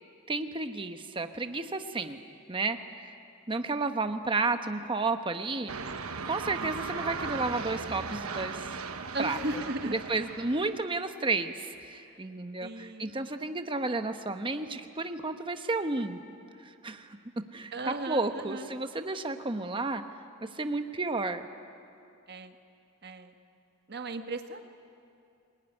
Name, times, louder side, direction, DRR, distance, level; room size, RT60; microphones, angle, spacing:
voice 1, 0.3-2.2 2.5-3.1 3.5-5.7 6.2-8.8 9.2-9.4 9.8-16.2 16.6-20.0 20.4-21.5, right 3 dB, 25° right, 7 dB, 1.0 m, -32 dB
sound 1, 5.7-10.8, right 5 dB, 85° right, 1.1 m, -37 dB
voice 2, 6.5-6.9 9.1-9.9 12.6-13.3 17.7-18.7 22.3-22.5 23.0-23.3 23.9-24.6, right 2 dB, 50° right, 6 dB, 1.4 m, -36 dB
25.0 x 20.5 x 9.9 m, 2.6 s
head